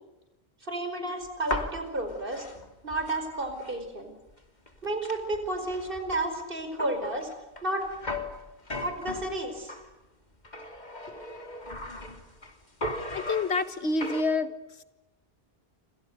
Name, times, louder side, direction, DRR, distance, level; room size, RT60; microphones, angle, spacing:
voice 1, 0.6-2.5 2.8-4.1 4.8-7.3 7.6-7.9 8.8-9.8, right 1 dB, 55° right, 7 dB, 5.3 m, -32 dB
sound 1, 1.2-3.9 4.3-4.4 4.7-9.9 10.4-12.5 12.8-14.2, left 1 dB, 45° left, 3.0 m, -38 dB
voice 2, 13.1-14.5, left 3 dB, 85° left, 12 dB, 2.0 m, -27 dB
29.0 x 26.0 x 6.7 m, 1.0 s
omnidirectional pair, 1.1 m